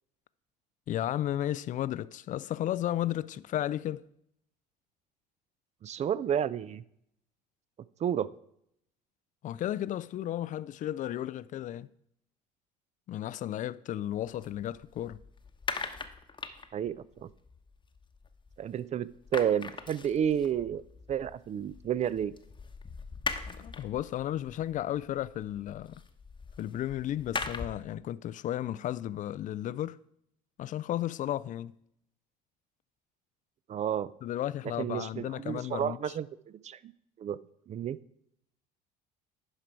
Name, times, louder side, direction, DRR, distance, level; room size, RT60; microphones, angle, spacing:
voice 1, 0.9-4.0 9.4-11.9 13.1-15.2 23.5-26.0 26.6-30.0 30.6-31.7 34.2-36.1, left 12 dB, 40° left, 0.4 m, -34 dB
voice 2, 5.8-6.8 8.0-8.3 16.7-17.3 18.6-20.8 21.1-22.3 33.7-34.1 34.8-36.9 37.2-37.4 37.7-38.0, right 9 dB, 35° right, 0.5 m, -31 dB
sound 1, 14.1-18.8 19.1-27.9, left 4 dB, 20° left, 1.0 m, -41 dB
11.5 x 5.0 x 4.5 m
hypercardioid pair, 60°, 21 cm